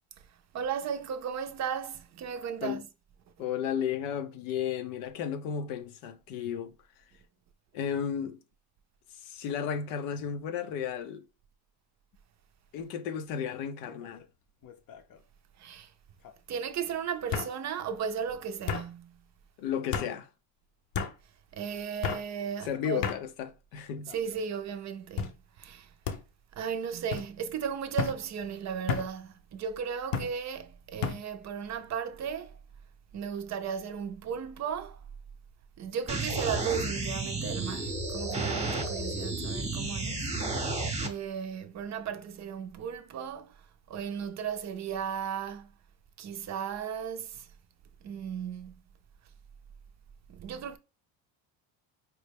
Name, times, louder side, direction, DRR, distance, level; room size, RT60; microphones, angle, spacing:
voice 1, 0.5-2.8 15.6-15.9 16.5-19.2 21.5-23.1 24.1-25.9 26.5-32.5 33.1-35.0 35.8-40.3 41.0-45.7 46.2-47.5 48.0-48.7 50.3-50.8, right 7 dB, 40° right, 0.4 m, -35 dB
voice 2, 3.4-6.7 7.7-8.4 9.2-11.2 12.7-14.2 19.6-20.3 22.6-24.1, left 8 dB, 85° left, 0.7 m, -33 dB
sound 1, 13.9-14.2 14.6-15.2 16.2-16.3 17.3-17.5 18.7-18.9 19.9-20.1 20.9-21.1 22.0-22.2 23.0-23.2 24.0-24.4 25.2-25.4 26.0-26.2 27.1-27.3 28.0-28.2 28.9-29.1 30.1-30.3 31.0-31.2, left 6 dB, 45° left, 0.6 m, -32 dB
sound 2, 36.1-41.1, right 2 dB, 15° right, 0.8 m, -32 dB
4.5 x 2.1 x 3.3 m
supercardioid pair, 95°, 47 cm